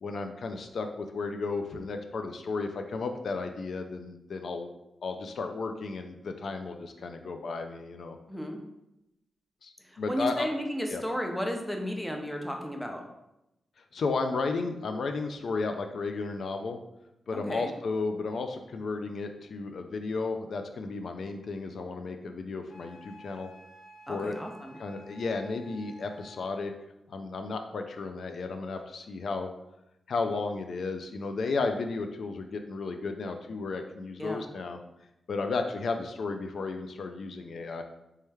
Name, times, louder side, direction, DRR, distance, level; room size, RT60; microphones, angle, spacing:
voice 1, 0.0-4.7 5.0-8.2 9.6-10.5 10.9-11.0 13.9-16.8 17.3-23.5 24.1-24.4 24.8-26.7 27.1-29.5 30.1-34.8 35.3-37.8, left 4 dB, 70° left, 6 dB, 0.3 m, -33 dB
voice 2, 8.3-8.6 9.9-13.0 17.3-17.7 24.1-24.8 34.2-34.4, equal, 5° left, 2 dB, 0.6 m, -34 dB
Wind instrument woodwind instrument, 22.7-26.6, equal, 45° left, 0.8 m, -52 dB
3.2 x 3.1 x 3.4 m, 0.89 s
cardioid pair, 90°, 0 cm